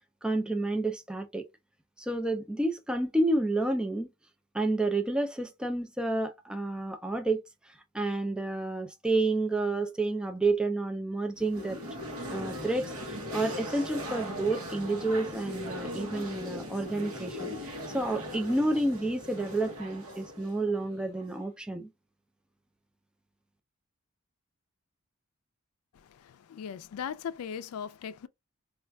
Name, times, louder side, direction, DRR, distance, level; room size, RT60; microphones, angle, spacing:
voice 1, 0.2-1.5 2.0-4.1 4.5-11.8 12.3-21.9, right 2 dB, 5° right, 0.3 m, -30 dB
sound 1, 11.4-21.4, left 1 dB, 80° right, 0.9 m, -39 dB
voice 2, 25.9-28.3, left 7 dB, 85° left, 0.4 m, -39 dB
4.2 x 2.3 x 2.2 m
head